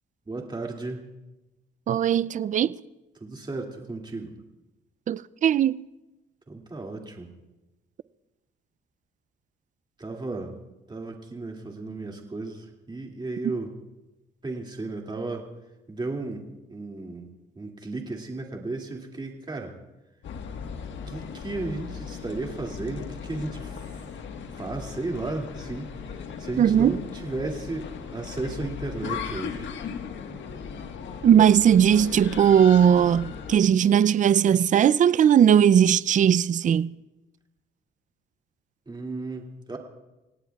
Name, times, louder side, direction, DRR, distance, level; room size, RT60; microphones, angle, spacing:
voice 1, 0.3-1.0 3.2-4.3 6.5-7.3 10.0-10.5 10.9-13.7 14.4-15.5 15.9-19.7 21.1-24.0 24.6-27.8 28.1-29.7 38.9-39.8, right 2 dB, 20° right, 2.4 m, -34 dB
voice 2, 1.9-2.8 5.1-5.8 26.6-27.0 31.2-36.9, right 9 dB, 40° right, 0.4 m, -19 dB
sound 1, 20.2-33.6, left 6 dB, 70° left, 1.4 m, -37 dB
26.5 x 17.5 x 2.4 m
cardioid pair, 90°, 20 cm